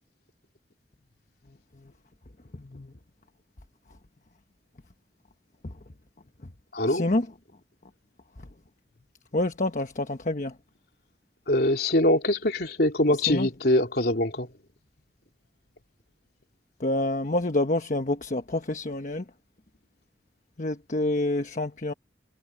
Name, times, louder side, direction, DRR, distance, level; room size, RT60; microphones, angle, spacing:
voice 1, 2.6-2.9 5.6-5.7 6.9-7.3 9.3-10.5 13.3-13.5 16.8-19.2 20.6-21.9, left 1 dB, 45° left, 1.1 m, -27 dB
voice 2, 6.7-7.1 11.5-14.5, left 1 dB, 60° left, 3.4 m, -23 dB
head